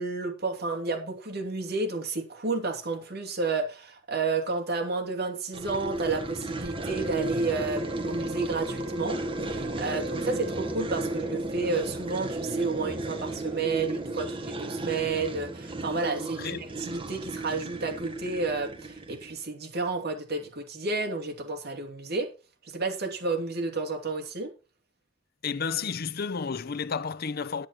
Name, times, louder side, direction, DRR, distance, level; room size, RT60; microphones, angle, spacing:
voice 1, 0.0-22.3 22.6-24.5, right 3 dB, 55° right, 2.9 m, -31 dB
sound 1, 5.5-19.4, right 2 dB, 25° right, 1.5 m, -34 dB
Wind instrument woodwind instrument, 6.6-11.0, right 1 dB, 80° right, 1.7 m, -46 dB
voice 2, 25.4-27.7, left 5 dB, 50° left, 0.6 m, -31 dB
10.5 x 10.0 x 4.4 m
head